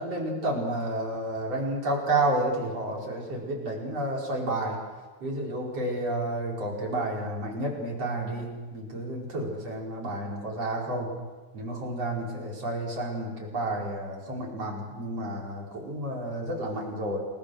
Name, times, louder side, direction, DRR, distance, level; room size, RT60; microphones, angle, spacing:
voice 1, 0.0-4.8 5.2-11.1 11.5-17.2, right 1 dB, 30° right, -2 dB, 5.6 m, -31 dB
29.5 x 21.5 x 6.5 m, 1.3 s
omnidirectional pair, 5.5 m